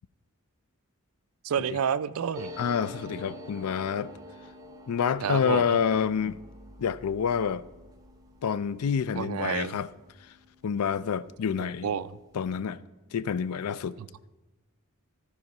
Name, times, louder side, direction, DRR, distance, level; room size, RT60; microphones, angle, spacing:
voice 1, 1.4-2.5 5.2-5.8 9.1-9.8 11.6-12.1 14.0-14.1, right 7 dB, 70° right, 0.4 m, -30 dB
sound 1, 2.3-11.5 11.8-11.9 12.1-12.7, equal, 15° right, 0.9 m, -47 dB
voice 2, 2.6-4.1 4.9-6.4 6.8-7.6 8.4-9.9 10.6-11.9 12.3-12.8 13.1-14.0, left 7 dB, 90° left, 0.4 m, -28 dB
14.5 x 4.9 x 5.4 m
head